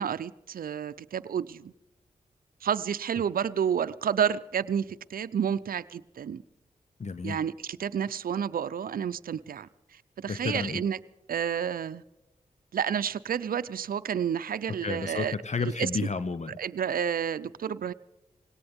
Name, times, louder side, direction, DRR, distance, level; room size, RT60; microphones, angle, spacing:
voice 1, 0.0-1.7 2.6-4.9 5.1-6.4 7.2-9.7 10.2-11.0 11.3-12.0 12.7-15.3 15.8-15.9 16.6-17.9, right 8 dB, 75° right, 13 dB, 0.6 m, -30 dB
voice 2, 7.0-7.4 10.3-10.8 14.8-16.6, left 4 dB, 50° left, 12 dB, 0.8 m, -31 dB
19.5 x 18.0 x 3.6 m, 0.96 s
cardioid pair, 45°, 15 cm